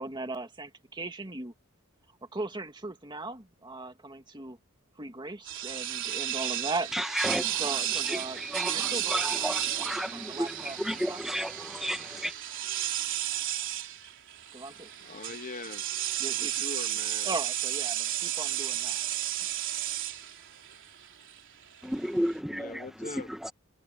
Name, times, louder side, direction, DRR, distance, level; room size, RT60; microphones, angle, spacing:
voice 1, 0.0-1.5 2.3-4.6 5.0-7.0 7.6-11.2 14.5-14.9 16.2-16.6 17.2-19.1, right 2 dB, 20° right, 2.1 m, -38 dB
sound 1, 5.5-22.3, right 12 dB, 60° right, 3.8 m, -33 dB
voice 2, 6.9-7.6 7.9-12.3 21.8-23.5, equal, ahead, 2.1 m, -33 dB
voice 3, 15.0-15.8 16.4-17.3 22.5-23.3, left 3 dB, 35° left, 1.0 m, -41 dB
head